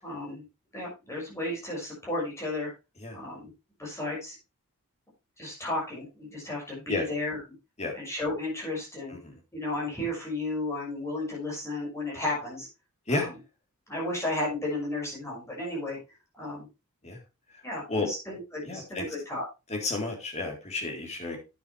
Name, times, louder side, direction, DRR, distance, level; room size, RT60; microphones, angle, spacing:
voice 1, 0.0-0.5 0.7-2.7 3.1-3.5 3.8-4.4 5.4-7.4 7.9-9.2 9.5-12.7 13.1-13.3 13.9-16.0 16.4-16.7 17.6-19.4, left 2 dB, 15° left, -4 dB, 6.1 m, -33 dB
voice 2, 18.6-19.0 19.7-21.4, left 3 dB, 30° left, 1 dB, 3.7 m, -31 dB
9.8 x 9.4 x 3.3 m, 0.26 s
head